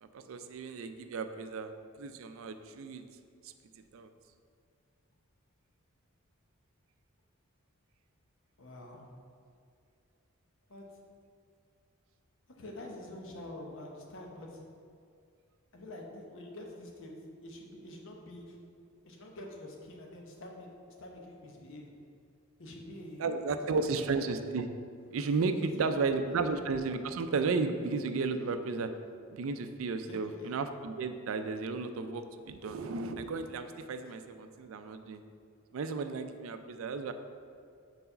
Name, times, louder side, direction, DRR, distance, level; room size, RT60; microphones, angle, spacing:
voice 1, 0.0-3.0 3.9-4.1 23.2-24.7 25.1-28.9 29.3-35.2 35.7-37.1, right 4 dB, 70° right, 9 dB, 0.4 m, -33 dB
voice 2, 8.6-9.1 10.7-10.8 12.6-14.6 15.7-18.6 19.0-20.7 21.0-21.9 22.6-24.2 25.5-26.0 26.3-26.4 30.1-30.5, left 1 dB, 65° left, 0 dB, 0.9 m, -46 dB
4.6 x 4.1 x 5.4 m, 2.3 s
head